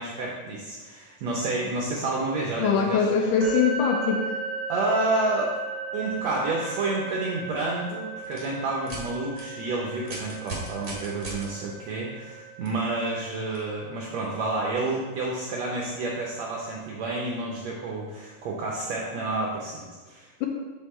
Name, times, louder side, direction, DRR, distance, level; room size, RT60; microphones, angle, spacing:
voice 1, 0.0-3.1 4.7-5.5 5.9-20.5, right 2 dB, 85° right, -2 dB, 1.5 m, -29 dB
voice 2, 2.6-4.2, left 5 dB, 80° left, 2 dB, 2.1 m, -22 dB
sound 1, 3.4-17.3, right 4 dB, 15° right, 1.3 m, -37 dB
sound 2, 8.2-8.4 8.8-9.0 9.3-9.4 10.0-11.4 12.6-12.7 13.5-13.6, right 2 dB, 45° right, 0.9 m, -37 dB
6.6 x 5.6 x 4.2 m, 1.3 s
omnidirectional pair, 4.1 m